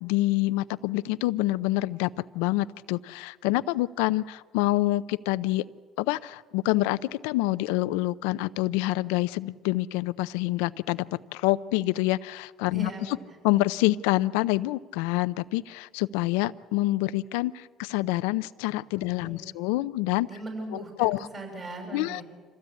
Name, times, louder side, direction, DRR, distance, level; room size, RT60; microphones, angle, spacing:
voice 1, 0.0-5.6 6.0-11.0 11.3-13.2 13.4-20.3 20.7-21.3 21.9-22.2, left 18 dB, 90° left, 15 dB, 0.6 m, -27 dB
voice 2, 12.7-13.3 18.9-19.6 20.2-22.2, right 2 dB, 35° right, 3 dB, 6.7 m, -40 dB
26.0 x 16.0 x 8.4 m, 1.5 s
supercardioid pair, 90°, 0 cm